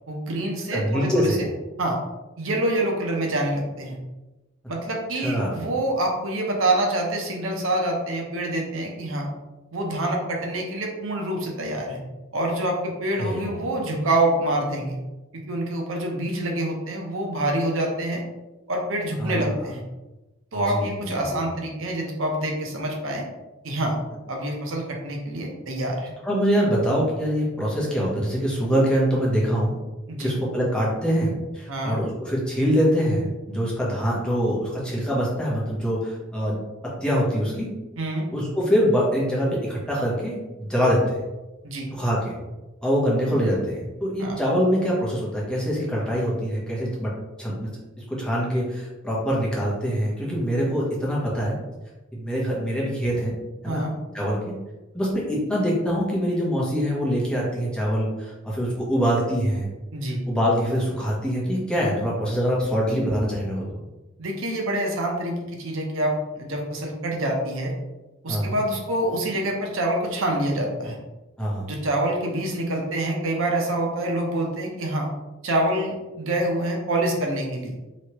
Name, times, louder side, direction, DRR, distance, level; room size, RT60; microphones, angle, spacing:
voice 1, 0.1-1.5 1.8-2.0 2.4-4.0 4.7-9.3 9.7-12.0 12.3-15.0 15.5-18.2 18.7-19.8 20.5-23.2 23.6-24.0 24.3-26.1 30.1-30.3 31.7-32.0 38.0-38.2 41.6-41.9 44.2-44.4 53.7-53.9 59.9-60.2 64.2-67.7 68.2-71.0 71.7-75.1 75.4-77.7, right 1 dB, 70° right, 0 dB, 0.7 m, -26 dB
voice 2, 0.7-1.4 5.2-5.6 13.2-13.4 19.2-19.5 20.5-21.4 26.2-29.7 30.2-36.6 36.8-37.7 38.3-41.2 41.9-42.4 42.8-47.1 47.4-47.7 48.0-51.5 52.1-53.3 53.6-53.8 54.1-54.5 54.9-59.7 60.3-63.6 68.3-68.6 71.4-71.7, equal, 5° left, -6 dB, 1.0 m, -24 dB
3.2 x 3.1 x 2.9 m, 1.1 s
head